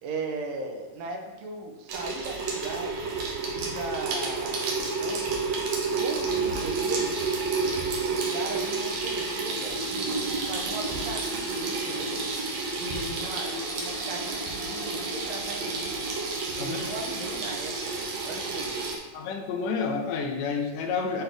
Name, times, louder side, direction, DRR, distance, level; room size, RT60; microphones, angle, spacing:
voice 1, 0.0-5.3 6.0-7.3 8.1-12.2 12.8-16.2 16.6-18.9, right 2 dB, 85° right, 3 dB, 2.4 m, -38 dB
Water tap faucet / Sink (filling or washing), 1.9-19.0, right 3 dB, 65° right, 2.0 m, -30 dB
voice 2, 19.1-21.2, left 5 dB, 80° left, 4 dB, 2.1 m, -29 dB
7.9 x 4.1 x 3.4 m, 1.2 s
omnidirectional pair, 3.9 m